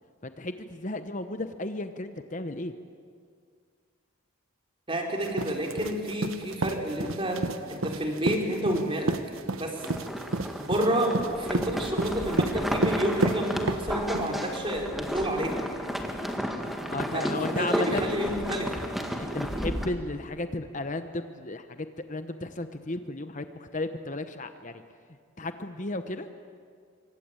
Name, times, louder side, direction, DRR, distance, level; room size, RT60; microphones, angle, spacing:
voice 1, 0.2-2.7 16.9-18.3 19.2-24.8 25.4-26.3, left 2 dB, 40° left, 9 dB, 1.0 m, -34 dB
voice 2, 4.9-7.4 7.7-9.2 9.5-9.8 10.6-15.6 17.1-18.7, right 1 dB, 25° right, 1 dB, 4.1 m, -29 dB
sound 1, 5.2-14.4, right 2 dB, 85° right, 1.2 m, -31 dB
sound 2, 9.8-19.9, equal, ahead, 2.0 m, -32 dB
26.5 x 24.5 x 9.0 m, 2.1 s
head